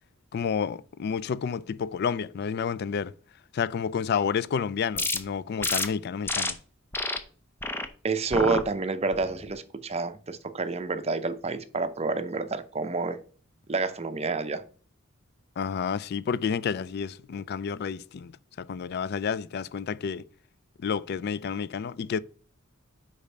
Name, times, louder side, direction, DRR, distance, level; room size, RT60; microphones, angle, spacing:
voice 1, 0.3-3.1 3.5-6.6 15.6-18.3 18.6-20.3 20.8-22.2, left 6 dB, 50° left, 0.3 m, -30 dB
sound 1, 4.9-5.2 5.6-5.9 6.3-6.5 6.9-7.2 7.6-7.9 8.3-8.6 9.1-9.5, left 2 dB, 10° left, 0.6 m, -29 dB
voice 2, 8.0-13.2 13.7-14.6, right 3 dB, 30° right, 0.7 m, -29 dB
5.2 x 5.0 x 5.5 m
head